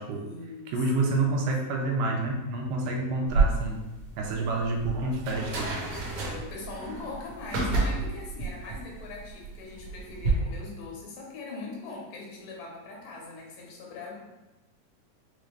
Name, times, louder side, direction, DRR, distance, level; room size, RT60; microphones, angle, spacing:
voice 1, 0.1-0.7 1.0-1.2 6.2-14.1, left 3 dB, 90° left, -2 dB, 2.7 m, -41 dB
voice 2, 0.7-3.8 4.2-5.8, right 2 dB, 85° right, 1 dB, 2.3 m, -28 dB
sound 1, 3.3-10.3, right 3 dB, 65° right, 2.0 m, -30 dB
6.0 x 2.5 x 3.2 m, 1.0 s
omnidirectional pair, 3.8 m